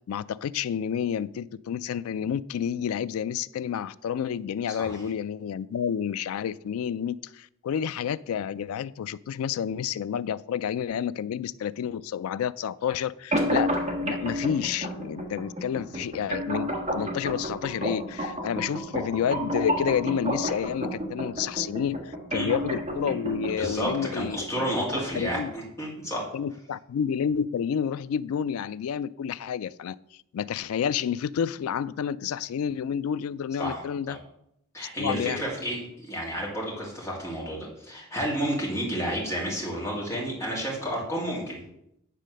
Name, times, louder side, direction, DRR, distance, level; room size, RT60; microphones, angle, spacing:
voice 1, 0.1-13.7 14.0-24.4 25.1-25.5 26.3-30.0 30.3-34.2 35.0-35.4, left 8 dB, 75° left, 19 dB, 0.3 m, -29 dB
sound 1, 13.3-25.3, equal, 30° right, 1.5 m, -31 dB
voice 2, 23.5-26.2 33.6-33.8 34.1-34.2 34.7-41.6, equal, 15° left, -4 dB, 2.4 m, -31 dB
9.2 x 4.1 x 6.5 m, 0.78 s
head